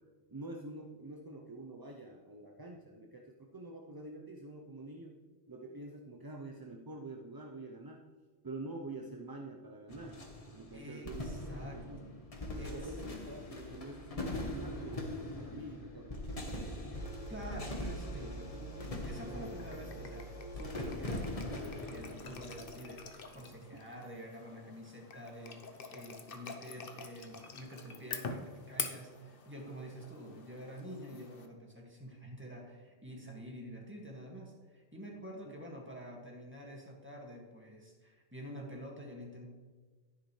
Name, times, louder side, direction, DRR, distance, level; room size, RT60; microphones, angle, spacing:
voice 1, 0.0-5.2 5.5-8.1 8.4-10.2 10.5-11.3 11.7-12.0 12.5-16.7 23.7-23.8 35.1-35.5, right 2 dB, 25° right, 1 dB, 0.6 m, -47 dB
sound 1, 9.9-23.4, left 1 dB, 35° left, 1.3 m, -42 dB
voice 2, 10.7-12.1 12.6-13.2 13.6-13.7 17.3-39.5, equal, 10° right, -2 dB, 2.0 m, -48 dB
sound 2, 18.8-31.5, left 5 dB, 60° left, 1.0 m, -47 dB
11.5 x 10.5 x 3.2 m, 1.4 s
omnidirectional pair, 1.1 m